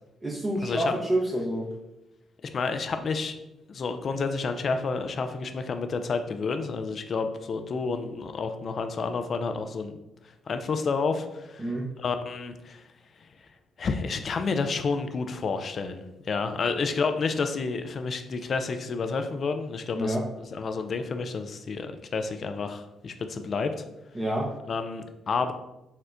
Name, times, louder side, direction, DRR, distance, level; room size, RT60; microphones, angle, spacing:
voice 1, 0.2-1.7 11.6-11.9 20.0-20.2 24.1-24.5, right 1 dB, 20° right, -4 dB, 0.7 m, -28 dB
voice 2, 2.4-3.4 3.7-10.0 10.5-11.7 12.0-12.8 13.8-20.2 20.5-23.8 24.7-25.5, left 4 dB, 55° left, 7 dB, 0.3 m, -30 dB
4.2 x 2.1 x 2.5 m, 0.94 s
hypercardioid pair, 45°, 0 cm